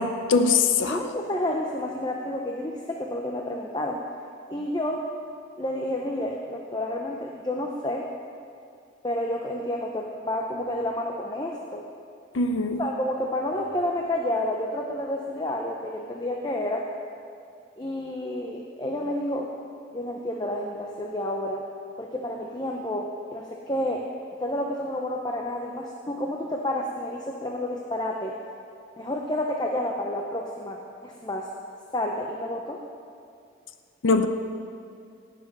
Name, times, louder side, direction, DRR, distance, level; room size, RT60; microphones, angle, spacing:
voice 1, 0.0-1.0 12.3-12.8 34.0-34.3, left 4 dB, 80° left, 8 dB, 0.6 m, -22 dB
voice 2, 0.9-4.0 4.5-5.1 5.6-8.1 9.0-11.8 12.8-16.9 17.8-19.5 19.9-21.6 22.0-24.1 24.4-28.3 29.0-31.5 31.9-32.8, left 1 dB, 20° left, 1 dB, 0.7 m, -30 dB
18.0 x 7.5 x 5.4 m, 2.4 s
head